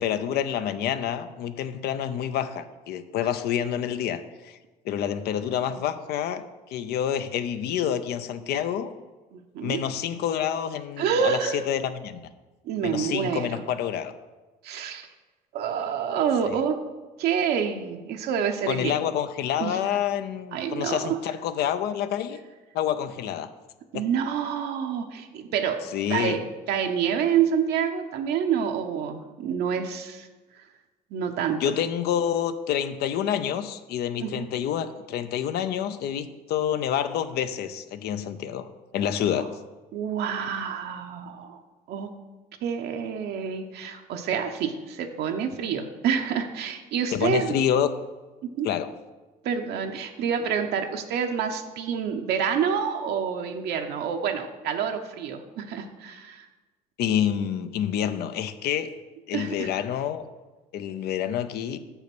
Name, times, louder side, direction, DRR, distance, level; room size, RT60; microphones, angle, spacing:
voice 1, 0.0-4.6 4.8-6.4 6.7-8.9 9.6-12.2 12.8-14.1 16.5-16.6 18.7-22.4 22.7-23.5 23.9-24.0 25.9-26.4 31.6-38.7 38.9-39.5 47.1-47.9 48.6-48.9 57.0-58.9 59.3-60.2 60.7-61.8, left 9 dB, 75° left, 11 dB, 0.6 m, -28 dB
voice 2, 9.3-9.8 11.0-11.6 12.6-13.6 14.6-15.1 15.5-16.8 17.2-18.9 19.6-19.8 20.5-21.2 23.9-30.3 30.6-30.7 31.1-31.7 34.2-34.4 39.4-39.5 39.9-41.6 41.9-42.1 42.6-47.6 48.4-48.7 49.4-56.5 59.3-59.7, right 7 dB, 75° right, 4 dB, 0.8 m, -28 dB
6.7 x 5.7 x 6.0 m, 1.2 s
cardioid pair, 110°, 17 cm